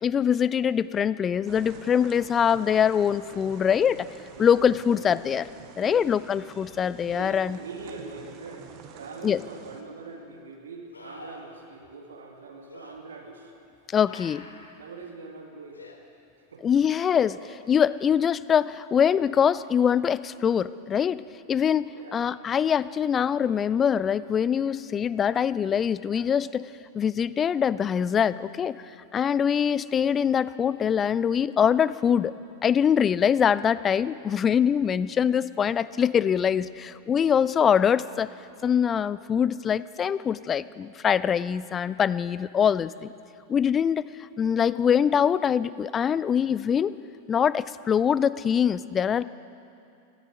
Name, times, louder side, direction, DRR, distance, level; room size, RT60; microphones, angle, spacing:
voice 1, 0.0-4.1 4.4-5.5 5.8-7.6 9.2-9.4 13.9-14.5 16.6-21.2 21.5-26.7 26.9-28.8 29.1-32.3 32.6-38.3 38.6-43.1 43.5-46.9 47.3-49.2, left 8 dB, 25° left, 17 dB, 0.4 m, -23 dB
sound 1, 1.5-9.8, right 7 dB, 40° right, 1.1 m, -48 dB
voice 2, 4.9-5.2 5.7-6.1 7.1-13.5 14.8-15.9 16.5-16.6 21.9-22.3, right 4 dB, 65° right, 2 dB, 2.2 m, -43 dB
sound 2, 9.3-9.4 10.9-11.6 12.7-12.9 14.0-14.8 15.7-16.0 17.2-17.8 21.0-21.1, left 3 dB, 75° left, 1.5 m, -47 dB
18.0 x 14.5 x 5.2 m, 2.6 s
figure-of-eight pair, 90°, 0 cm